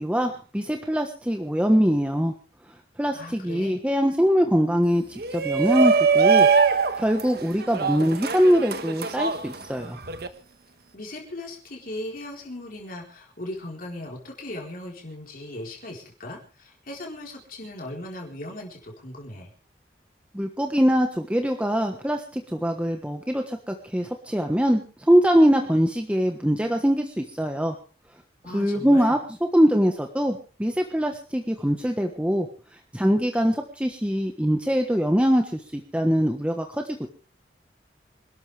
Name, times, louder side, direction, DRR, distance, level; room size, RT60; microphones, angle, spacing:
voice 1, 0.0-2.3 3.0-6.5 7.0-10.0 20.3-27.7 28.5-29.2 29.5-32.5 32.9-37.1, equal, 5° right, 4 dB, 1.3 m, -23 dB
voice 2, 3.1-3.8 10.9-19.5 28.4-29.2, left 1 dB, 50° left, -1 dB, 4.3 m, -38 dB
Shout, 5.2-10.3, right 5 dB, 60° right, 1.5 m, -22 dB
27.0 x 13.0 x 3.4 m, 0.36 s
head